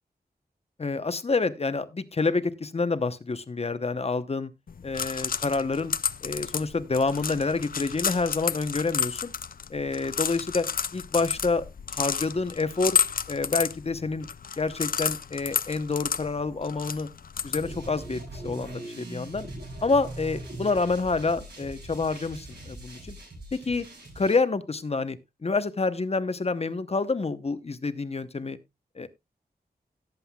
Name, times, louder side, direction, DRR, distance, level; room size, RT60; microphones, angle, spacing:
voice 1, 0.8-4.5 4.8-5.9 6.2-9.3 9.7-10.7 10.9-11.6 11.9-13.0 13.3-14.3 14.6-17.1 17.4-19.5 19.8-23.2 23.5-23.9 24.2-28.6 29.0-29.1, left 3 dB, 40° left, 0.8 m, -28 dB
sound 1, 4.7-18.0, left 7 dB, 60° left, 0.5 m, -31 dB
sound 2, 17.6-24.4, right 1 dB, 90° right, 7.1 m, -41 dB
17.5 x 7.7 x 2.3 m
wide cardioid pair, 100°, 17 cm